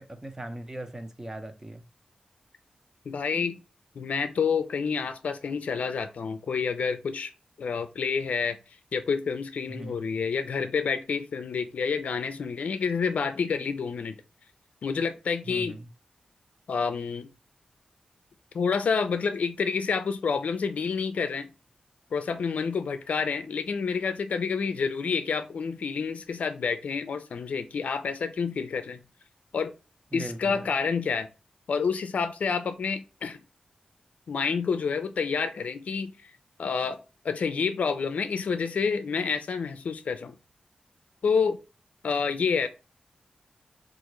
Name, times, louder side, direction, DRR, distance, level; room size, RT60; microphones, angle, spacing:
voice 1, 0.0-1.8 9.7-10.0 15.4-15.9 30.1-30.7, right 1 dB, 20° right, 0.7 m, -39 dB
voice 2, 3.1-3.6 4.0-7.3 7.6-8.6 8.9-14.2 14.8-15.8 16.7-17.3 18.5-21.5 22.1-29.0 29.5-29.7 30.1-31.3 31.7-33.4 34.3-36.3 36.6-37.0 37.2-40.3 41.2-41.6 42.0-42.7, left 5 dB, 85° left, 0.4 m, -28 dB
3.7 x 2.5 x 3.0 m
cardioid pair, 60°, 2 cm